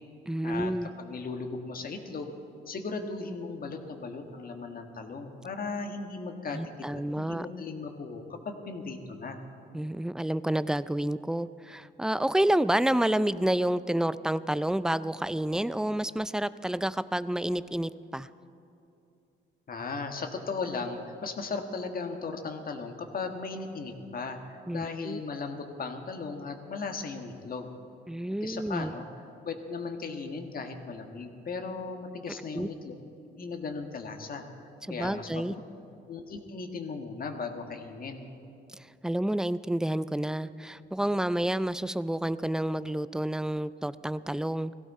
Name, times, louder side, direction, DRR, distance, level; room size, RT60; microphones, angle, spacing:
voice 1, 0.3-0.9 6.5-7.5 9.7-18.3 24.7-25.2 28.1-28.9 32.5-32.7 34.9-35.5 39.0-44.8, right 1 dB, 5° right, 16 dB, 0.4 m, -29 dB
voice 2, 1.0-2.3 2.7-6.7 7.2-9.4 19.7-24.4 24.7-27.7 28.4-29.1 29.4-32.9 33.4-35.6 36.1-38.3, left 4 dB, 45° left, 5 dB, 1.6 m, -37 dB
18.5 x 16.0 x 4.3 m, 2.8 s
cardioid pair, 90°, 20 cm